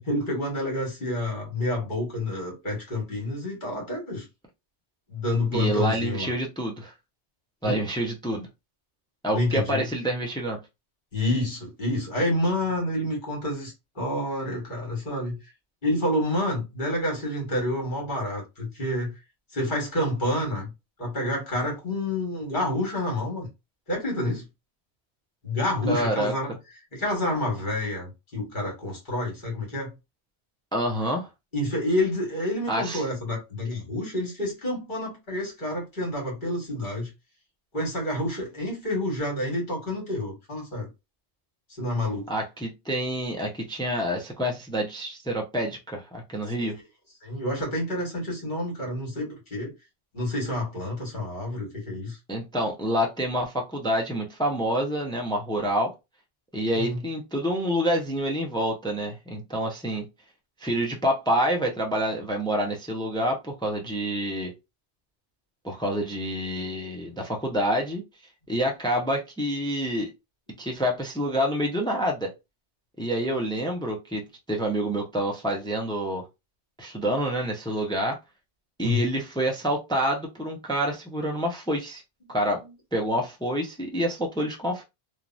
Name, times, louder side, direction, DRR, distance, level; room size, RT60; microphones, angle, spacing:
voice 1, 0.0-4.2 5.1-6.3 7.6-7.8 9.3-9.8 11.1-15.4 15.8-19.1 19.5-20.7 21.0-23.5 23.9-24.4 25.4-26.5 26.9-29.9 31.5-37.1 37.7-40.9 41.8-42.3 46.6-46.7 47.2-49.7 50.1-52.2 56.7-57.0 78.8-79.0, left 1 dB, 50° left, 1.6 m, -28 dB
voice 2, 5.5-6.9 7.6-8.5 9.2-10.6 25.9-26.3 30.7-31.3 32.7-33.0 42.3-46.8 52.3-55.9 56.5-60.1 60.6-64.5 65.6-68.0 68.5-70.1 70.6-72.3 73.0-76.3 76.8-78.2 78.8-82.0 82.3-82.6 82.9-84.8, equal, 5° left, 0.3 m, -27 dB
3.0 x 2.3 x 2.5 m
omnidirectional pair, 1.1 m